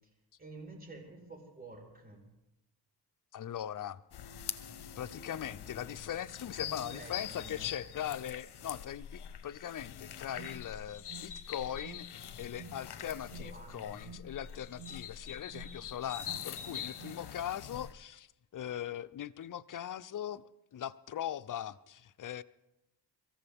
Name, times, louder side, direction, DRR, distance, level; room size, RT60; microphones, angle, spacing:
voice 1, 0.4-2.2 6.6-7.7 13.1-13.8 15.2-15.9, right 2 dB, 20° right, 4.9 m, -50 dB
voice 2, 3.3-4.0 5.0-18.3 18.5-20.4 20.7-22.4, left 10 dB, 50° left, 0.6 m, -40 dB
sound 1, 4.1-17.9, left 9 dB, 65° left, 0.9 m, -44 dB
Alarm, 9.8-17.3, right 5 dB, 75° right, 1.7 m, -53 dB
24.0 x 14.5 x 3.6 m
cardioid pair, 65°, 42 cm